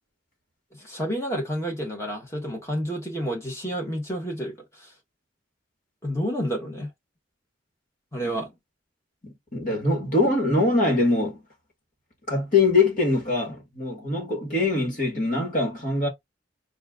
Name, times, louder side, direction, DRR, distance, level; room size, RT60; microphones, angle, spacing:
voice 1, 0.7-4.9 6.0-6.9 8.1-8.5, equal, 15° left, 1.5 m, -30 dB
voice 2, 9.2-11.4 12.3-16.1, left 2 dB, 45° left, 1.9 m, -23 dB
4.3 x 2.6 x 3.7 m
head